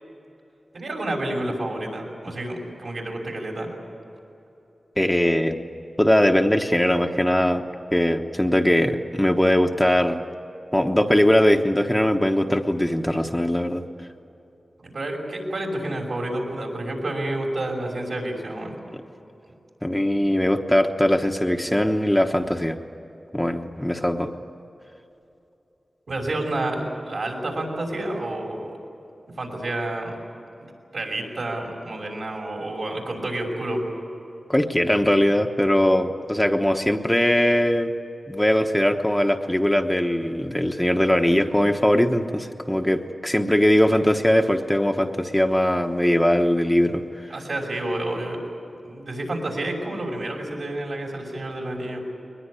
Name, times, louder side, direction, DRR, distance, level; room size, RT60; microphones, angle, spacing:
voice 1, 0.7-3.7 14.8-18.8 26.1-28.8 29.4-30.2 30.9-33.8 47.3-48.4 48.8-52.0, right 1 dB, 70° right, 0 dB, 6.0 m, -29 dB
voice 2, 5.0-5.6 6.0-7.6 7.9-10.2 10.7-13.8 18.9-19.0 19.8-22.8 23.3-24.3 34.5-37.9 38.3-47.3, left 1 dB, 10° left, 4 dB, 1.1 m, -20 dB
22.0 x 20.5 x 9.9 m, 2.9 s
wide cardioid pair, 85°, 0 cm